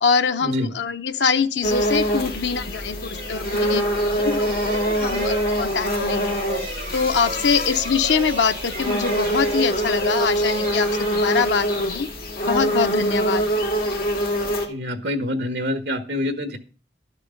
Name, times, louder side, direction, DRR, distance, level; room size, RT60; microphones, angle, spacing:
voice 1, 0.0-3.8 4.1-6.4 6.9-12.1 12.4-13.5, left 5 dB, 90° left, 8 dB, 0.7 m, -24 dB
sound 1, 1.6-14.7, equal, 55° left, 2.4 m, -24 dB
sound 2, 3.1-11.8, right 2 dB, 50° right, 3.8 m, -34 dB
voice 2, 14.7-16.6, left 1 dB, 85° right, 7 dB, 1.5 m, -26 dB
12.5 x 6.6 x 5.2 m, 0.39 s
head